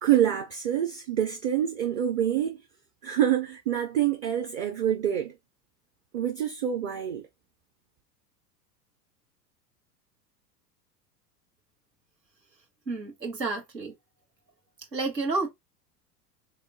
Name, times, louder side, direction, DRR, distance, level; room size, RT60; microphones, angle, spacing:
voice 1, 0.0-2.6 3.0-5.3 6.1-7.2, right 10 dB, 30° right, 0.5 m, -26 dB
voice 2, 12.9-13.9 14.9-15.5, right 3 dB, 90° right, 1.3 m, -30 dB
3.7 x 2.8 x 2.6 m
figure-of-eight pair, 85°, 48 cm